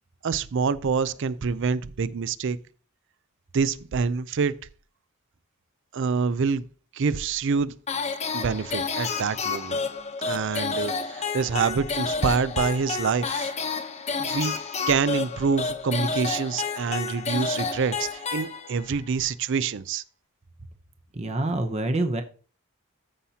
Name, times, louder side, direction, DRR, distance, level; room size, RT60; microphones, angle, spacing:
voice 1, 0.2-2.6 3.5-4.6 5.9-6.6 6.9-7.7 8.3-9.8 10.2-13.5 14.2-14.5 14.9-20.0, right 5 dB, 60° right, 0.4 m, -26 dB
sound 1, 7.9-19.0, left 4 dB, 30° left, 0.9 m, -30 dB
voice 2, 21.2-22.2, right 2 dB, 30° right, 0.7 m, -26 dB
14.0 x 5.6 x 2.8 m
head